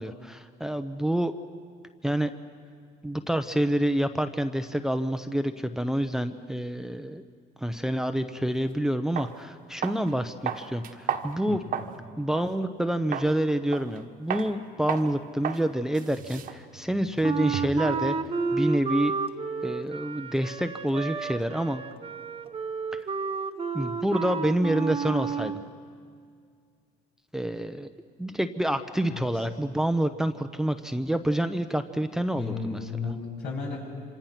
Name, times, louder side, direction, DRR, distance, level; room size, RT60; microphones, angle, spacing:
voice 1, 0.0-1.3 2.0-2.3 3.0-7.2 7.6-11.6 12.2-18.2 18.5-19.1 19.6-21.8 22.9-23.1 23.7-25.6 27.3-27.9 28.2-32.8, right 1 dB, 5° right, 9 dB, 0.8 m, -27 dB
sound 1, 8.6-8.7 9.2-9.3 9.8-10.1 10.5-12.0 12.4-12.5 13.1-13.3 13.7-14.0 14.3-14.5 14.9-15.1 15.4-15.6 15.9-17.9, right 8 dB, 60° right, 1.5 m, -33 dB
Wind instrument woodwind instrument, 17.2-25.6, right 5 dB, 35° right, 1.1 m, -31 dB
voice 2, 29.1-29.4 32.3-33.8, left 5 dB, 75° left, -2 dB, 7.2 m, -34 dB
27.0 x 26.0 x 5.9 m, 2.2 s
cardioid pair, 110°, 17 cm